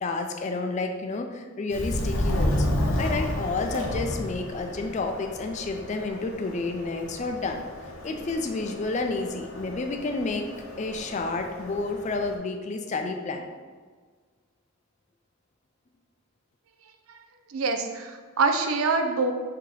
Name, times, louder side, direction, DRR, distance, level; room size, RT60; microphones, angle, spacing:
voice 1, 0.0-2.7 3.0-7.6 8.0-10.5 10.8-13.5, left 3 dB, 35° left, 5 dB, 0.3 m, -30 dB
Subway metro underground, 1.7-12.3, left 1 dB, 70° left, 0.7 m, -32 dB
voice 2, 17.5-19.3, right 4 dB, 85° right, 5 dB, 0.5 m, -25 dB
3.8 x 2.8 x 4.7 m, 1.5 s
head